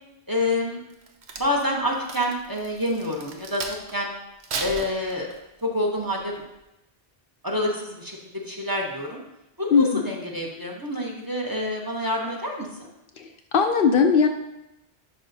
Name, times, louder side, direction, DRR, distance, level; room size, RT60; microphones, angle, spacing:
voice 1, 0.3-0.8 1.4-4.1 4.6-5.3 5.6-6.4 7.4-9.2 9.6-12.7, left 1 dB, 20° right, -1 dB, 0.9 m, -27 dB
Crack, 0.9-4.0 4.4-5.6 6.1-6.4, right 4 dB, 85° right, 1.1 m, -35 dB
voice 2, 9.7-10.1 13.2-14.3, left 5 dB, 65° left, 5 dB, 0.7 m, -19 dB
11.0 x 4.8 x 2.7 m, 0.92 s
omnidirectional pair, 1.1 m